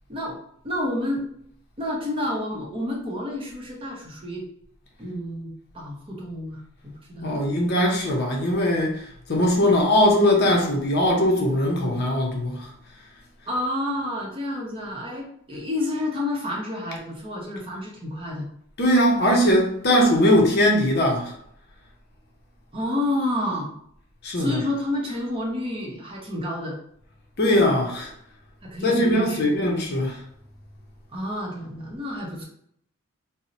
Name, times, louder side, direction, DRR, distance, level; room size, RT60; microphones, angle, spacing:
voice 1, 0.6-1.2 1.8-4.4 5.0-5.5 5.7-7.4 13.5-18.5 22.7-23.7 24.3-26.8 28.6-29.6 31.1-32.5, left 1 dB, 25° right, 0.6 m, -29 dB
voice 2, 7.2-12.7 18.8-21.3 24.2-24.6 27.4-28.1 28.8-30.2, left 1 dB, 50° left, 0.6 m, -20 dB
2.7 x 2.0 x 3.9 m
head